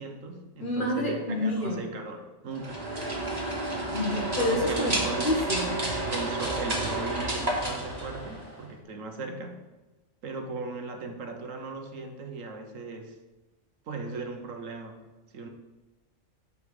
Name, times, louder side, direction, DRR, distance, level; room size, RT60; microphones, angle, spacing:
voice 1, 0.0-3.2 4.5-5.3 6.1-9.6 10.2-13.2 13.9-15.1 15.3-15.5, right 3 dB, 90° right, 4 dB, 1.4 m, -38 dB
voice 2, 0.6-1.9 3.9-5.0 5.2-5.9, left 1 dB, 40° left, 0 dB, 1.5 m, -28 dB
sound 1, 2.5-8.7, right 1 dB, 30° right, 1.8 m, -31 dB
8.2 x 5.5 x 4.8 m, 1.1 s
omnidirectional pair, 1.3 m